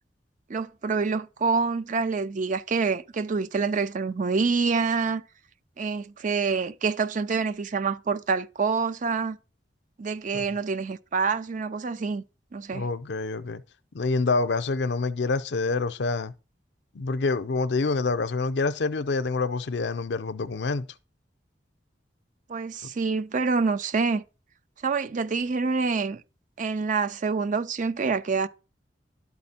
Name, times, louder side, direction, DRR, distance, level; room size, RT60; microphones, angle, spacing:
voice 1, 0.5-5.2 5.8-9.4 10.0-12.2 12.5-12.9 22.5-24.2 24.8-26.2 26.6-28.5, right 4 dB, 45° right, 0.5 m, -26 dB
voice 2, 12.7-13.6 13.9-16.3 16.9-20.9 22.8-22.9, left 3 dB, 75° left, 0.6 m, -27 dB
11.5 x 4.2 x 4.3 m
head